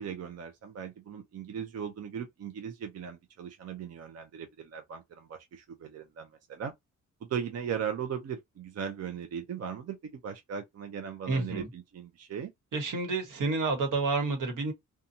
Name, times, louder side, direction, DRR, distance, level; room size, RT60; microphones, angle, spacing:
voice 1, 0.0-6.7 7.2-12.5, right 8 dB, 55° right, 0.6 m, -38 dB
voice 2, 11.3-11.7 12.7-14.7, right 3 dB, 80° right, 1.3 m, -29 dB
2.7 x 2.3 x 2.6 m
cardioid pair, 105°, 31 cm